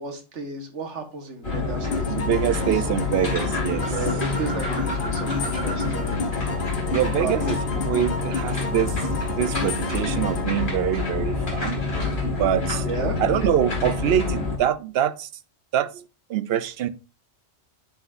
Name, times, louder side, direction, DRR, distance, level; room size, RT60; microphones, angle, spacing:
voice 1, 0.0-2.8 3.9-6.4 7.2-7.4 12.8-13.2, right 4 dB, 85° right, 1.7 m, -33 dB
sound 1, 1.4-14.6, left 3 dB, 45° left, 2.5 m, -27 dB
sound 2, 1.9-11.6, left 4 dB, 60° left, 1.1 m, -33 dB
voice 2, 2.1-3.9 6.9-7.6 7.9-9.0 9.3-11.8 12.3-12.8 13.2-15.3 15.7-16.0 16.3-16.9, right 11 dB, 65° right, 0.7 m, -24 dB
sound 3, 3.6-6.2 6.4-8.7, right 2 dB, 50° right, 2.7 m, -39 dB
10.0 x 4.9 x 2.5 m
omnidirectional pair, 1.2 m